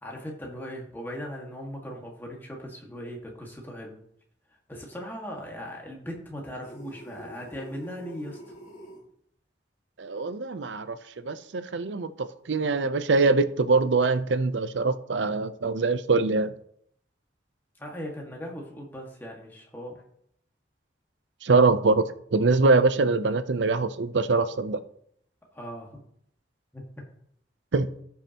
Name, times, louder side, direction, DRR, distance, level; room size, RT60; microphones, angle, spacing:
voice 1, 0.0-4.0 4.7-8.4 17.8-20.0 25.5-26.0 26.7-27.0, equal, 10° left, 1.8 m, -38 dB
sound 1, 6.6-9.0, right 1 dB, 40° left, 3.8 m, -45 dB
voice 2, 10.0-11.0 11.2-16.5 21.4-24.8 27.7-27.9, right 3 dB, 85° right, 0.6 m, -23 dB
16.0 x 5.7 x 2.9 m
head